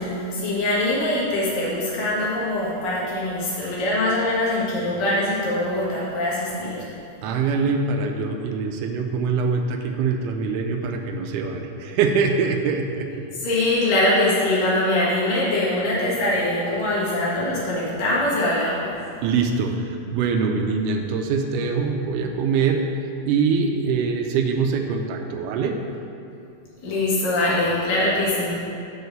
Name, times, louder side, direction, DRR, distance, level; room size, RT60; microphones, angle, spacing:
voice 1, 0.0-6.9 13.3-18.9 26.8-28.6, left 1 dB, 85° left, -7 dB, 3.3 m, -23 dB
voice 2, 7.2-13.2 19.2-22.8 23.3-25.8, right 5 dB, 80° right, 4 dB, 2.0 m, -23 dB
6.7 x 4.2 x 6.6 m, 2.6 s
omnidirectional pair, 3.8 m